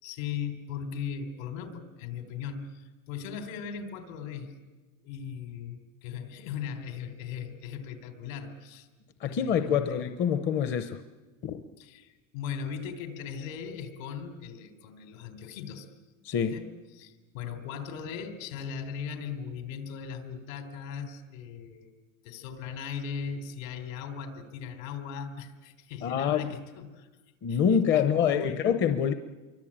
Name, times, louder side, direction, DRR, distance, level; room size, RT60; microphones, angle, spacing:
voice 1, 0.0-4.6 5.0-8.9 9.2-10.0 11.8-15.9 16.3-16.7 16.9-21.9 22.2-27.1 27.5-28.7, left 7 dB, 70° left, 8 dB, 3.9 m, -38 dB
voice 2, 9.2-11.0 11.4-11.6 16.2-16.6 26.0-26.5 27.4-29.1, left 8 dB, 25° left, 9 dB, 0.8 m, -26 dB
26.5 x 24.0 x 8.8 m, 1.3 s
supercardioid pair, 165°, 42 cm